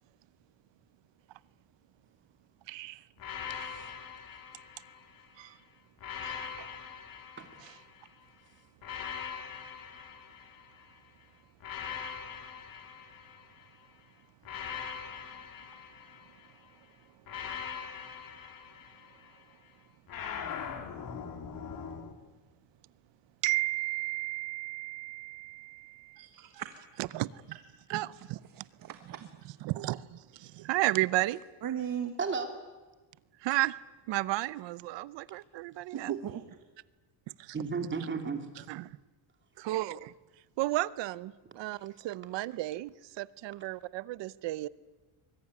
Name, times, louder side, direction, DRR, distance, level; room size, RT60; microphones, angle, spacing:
voice 1, 2.7-3.0 5.4-5.6 6.2-6.7 7.6-7.7 23.4-26.3 27.1-27.4 27.9-28.6 29.6-31.4 33.4-33.8 34.1-36.1 37.4-37.5 38.7-39.0 39.6-40.1 40.6-44.7, right 18 dB, 60° right, 0.8 m, -33 dB
sound 1, 3.2-5.3 6.0-8.1 8.8-11.0 11.6-13.8 14.4-16.6 17.3-19.4 20.1-22.1, left 7 dB, 45° left, 2.7 m, -42 dB
voice 2, 3.5-3.9 7.4-7.5 32.2-32.5 37.5-38.7, right 5 dB, 25° right, 2.9 m, -34 dB
voice 3, 26.2-26.7 27.1-27.2 27.9-28.0 28.8-29.4 31.6-32.2 35.9-36.4, right 9 dB, 40° right, 1.4 m, -37 dB
24.5 x 22.5 x 9.6 m
cardioid pair, 170°, 49 cm